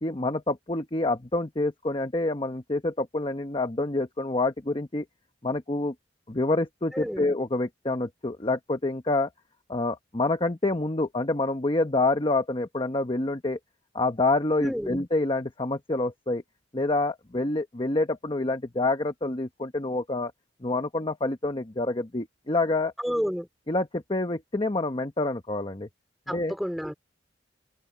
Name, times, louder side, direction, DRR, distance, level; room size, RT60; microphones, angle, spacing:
voice 1, 0.0-5.1 5.4-5.9 6.3-9.3 9.7-13.6 13.9-16.4 16.7-20.3 20.6-22.9 23.7-25.9 26.3-26.5, left 2 dB, 30° left, 1.0 m, -27 dB
voice 2, 6.9-7.3 14.6-15.0 23.0-23.5 26.3-26.9, equal, ahead, 3.1 m, -30 dB
head